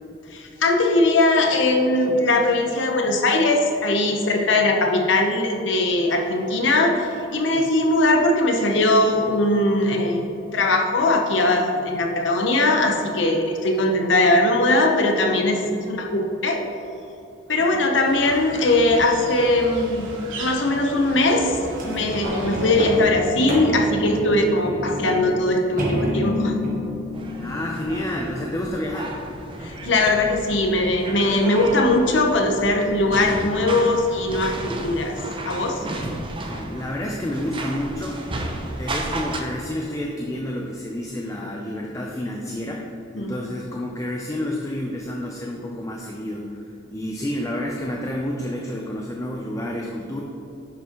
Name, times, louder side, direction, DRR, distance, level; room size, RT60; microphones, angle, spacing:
voice 1, 0.3-10.2 10.5-16.6 17.5-20.1 20.4-26.6 29.6-35.2 35.5-35.9 43.2-43.4, left 2 dB, 70° left, 2 dB, 0.9 m, -20 dB
sound 1, 18.0-23.1, right 1 dB, 85° right, 1.2 m, -35 dB
sound 2, 21.7-28.5 29.1-29.2, left 1 dB, 45° right, 1.3 m, -29 dB
sound 3, 27.1-39.4, right 2 dB, 25° right, 0.6 m, -33 dB
voice 2, 27.4-29.1 35.9-38.2 38.8-46.6 46.9-50.2, left 1 dB, 15° left, -1 dB, 0.5 m, -30 dB
9.8 x 5.8 x 3.0 m, 2.9 s
head